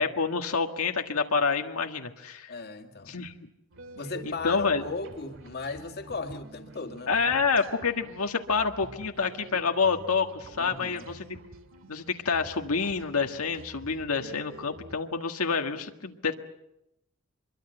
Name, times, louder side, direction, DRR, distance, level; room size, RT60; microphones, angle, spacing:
voice 1, 0.0-2.5 3.1-3.3 4.2-4.8 7.1-11.4 11.9-16.3, left 5 dB, 90° left, 1.7 m, -28 dB
voice 2, 2.5-3.2 4.0-7.3 10.6-11.2, left 3 dB, 50° left, 2.1 m, -36 dB
sound 1, 3.7-15.0, right 2 dB, 60° right, 2.3 m, -48 dB
25.5 x 23.0 x 7.9 m
head